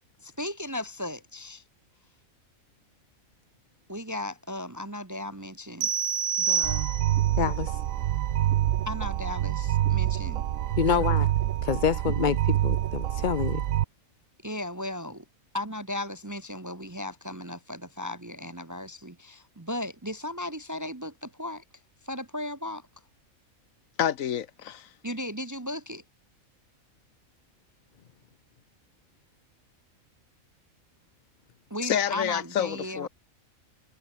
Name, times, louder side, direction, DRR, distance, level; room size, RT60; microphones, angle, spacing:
voice 1, 0.2-1.6 3.9-5.9 6.4-6.9 8.9-10.4 10.9-11.1 14.4-15.2 15.5-21.6 22.0-22.8 25.0-26.0 31.7-33.1, left 1 dB, 15° right, 0.7 m, -36 dB
sound 1, 5.8-7.4, right 7 dB, 55° right, 0.4 m, -27 dB
sound 2, 6.6-13.8, right 12 dB, 70° right, 1.1 m, -26 dB
voice 2, 7.4-7.8 10.8-11.3 11.6-13.6, left 7 dB, 45° left, 0.7 m, -27 dB
voice 3, 24.0-24.9 31.8-33.1, left 9 dB, 75° left, 1.3 m, -28 dB
omnidirectional pair, 1.5 m